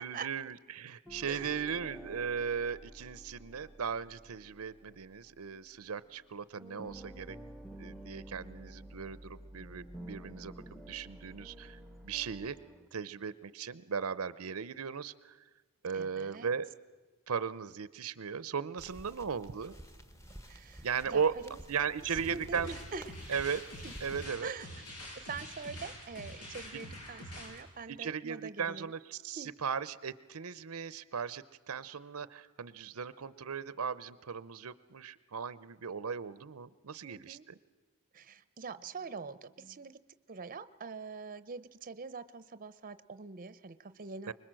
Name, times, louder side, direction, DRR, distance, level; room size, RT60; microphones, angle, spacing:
voice 1, 0.0-7.4 7.8-10.5 10.9-12.6 12.9-15.4 15.8-16.7 17.3-19.7 20.8-21.3 21.7-22.7 23.3-23.6 24.0-24.5 28.0-37.4 44.3-44.4, right 6 dB, 75° right, 17 dB, 0.7 m, -37 dB
sound 1, 1.0-6.3 6.6-12.9, equal, ahead, 0.9 m, -50 dB
voice 2, 15.9-16.5 20.5-21.6 22.0-23.4 23.8-23.9 24.4-24.8 25.2-28.9 29.3-29.5 37.0-37.5 38.1-40.0 40.3-44.3, right 5 dB, 40° right, 14 dB, 0.7 m, -44 dB
sound 2, 18.8-24.3, equal, 15° left, 1.3 m, -52 dB
sound 3, 22.1-27.6, equal, 80° left, 5.8 m, -46 dB
24.5 x 21.5 x 7.6 m, 1.2 s
head